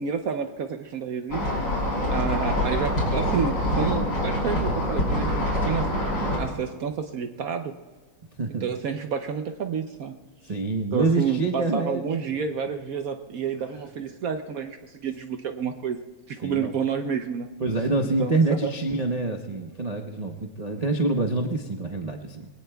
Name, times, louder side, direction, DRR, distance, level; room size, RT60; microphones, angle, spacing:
voice 1, 0.0-1.6 2.1-5.9 6.4-7.8 8.6-10.2 10.9-16.0 16.3-17.5 18.2-18.7, right 6 dB, 65° right, 6 dB, 0.9 m, -29 dB
sound 1, 1.3-6.4, left 1 dB, 60° left, 4.7 m, -25 dB
voice 2, 8.4-8.7 10.5-12.0 16.4-16.7 17.6-22.5, right 3 dB, 85° right, 1 dB, 0.3 m, -26 dB
26.0 x 21.0 x 2.3 m, 1.3 s
omnidirectional pair, 2.2 m